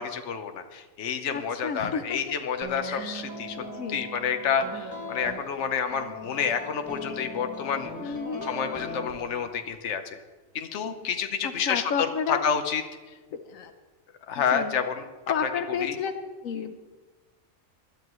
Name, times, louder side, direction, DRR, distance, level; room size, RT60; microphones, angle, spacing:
voice 1, 0.0-3.6 3.9-8.2 8.4-10.2 10.5-12.8 14.3-15.0 15.4-15.5 15.8-16.0, left 7 dB, 60° left, 7 dB, 1.2 m, -29 dB
voice 2, 1.3-2.2 2.8-3.2 3.6-4.0 8.0-8.5 11.4-12.4 13.3-13.7 14.4-14.7 15.3-16.1 16.4-16.7, left 6 dB, 80° left, 8 dB, 1.2 m, -31 dB
sound 1, 2.6-9.7, left 1 dB, 15° right, 1.8 m, -39 dB
20.0 x 12.0 x 3.1 m, 1.3 s
omnidirectional pair, 1.4 m